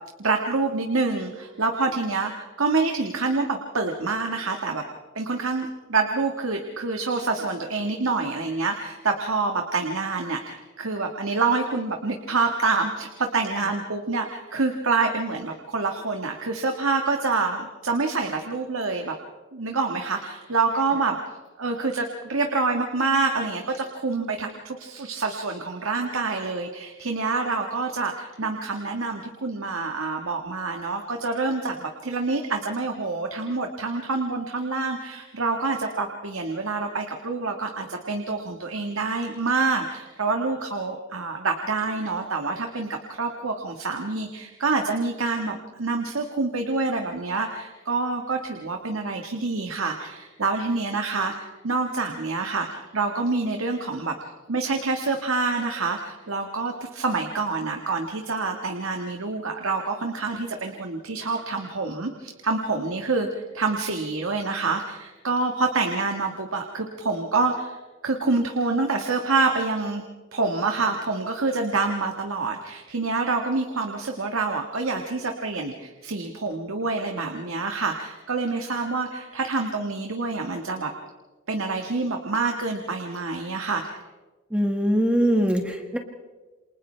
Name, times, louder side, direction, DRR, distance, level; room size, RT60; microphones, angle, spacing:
voice 1, 0.2-4.8 5.1-19.1 19.5-21.2 21.6-54.2 54.5-67.8 68.0-70.0 70.3-80.9 81.5-84.0, right 3 dB, 90° right, 3 dB, 1.6 m, -27 dB
voice 2, 84.5-86.0, equal, 5° right, 3 dB, 1.7 m, -22 dB
28.5 x 27.5 x 3.3 m, 1.2 s
head